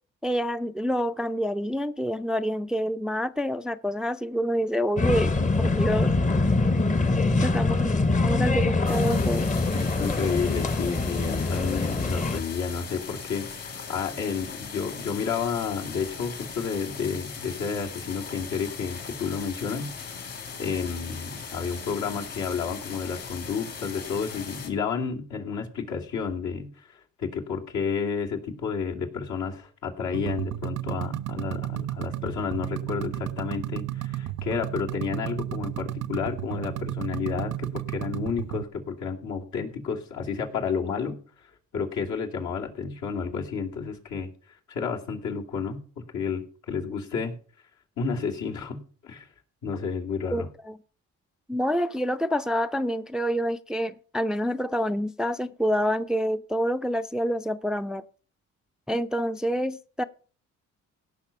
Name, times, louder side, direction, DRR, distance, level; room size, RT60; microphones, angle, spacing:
voice 1, 0.2-6.1 7.4-7.9 8.2-9.5 50.3-50.8 51.5-58.0 58.9-60.0, equal, ahead, 0.4 m, -27 dB
sound 1, 5.0-12.4, left 3 dB, 25° left, 1.0 m, -24 dB
sound 2, 8.8-24.7, left 5 dB, 55° left, 3.8 m, -39 dB
voice 2, 9.3-20.3 20.6-41.2 41.7-44.3 44.7-47.3 48.0-49.3 49.6-50.5, left 6 dB, 70° left, 2.7 m, -31 dB
sound 3, 30.1-38.6, right 14 dB, 80° right, 0.8 m, -33 dB
17.0 x 5.8 x 5.8 m
cardioid pair, 90°, 30 cm